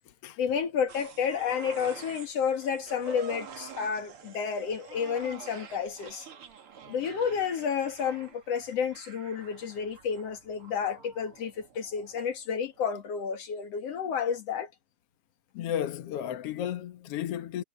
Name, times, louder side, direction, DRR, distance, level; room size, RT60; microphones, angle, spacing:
voice 1, 0.4-6.3 6.9-14.7, left 7 dB, 50° left, 2.7 m, -31 dB
sound 1, 0.9-12.4 12.7-12.8, right 6 dB, 45° right, 2.2 m, -47 dB
voice 2, 15.5-17.6, left 10 dB, 70° left, 1.4 m, -33 dB
omnidirectional pair, 4.2 m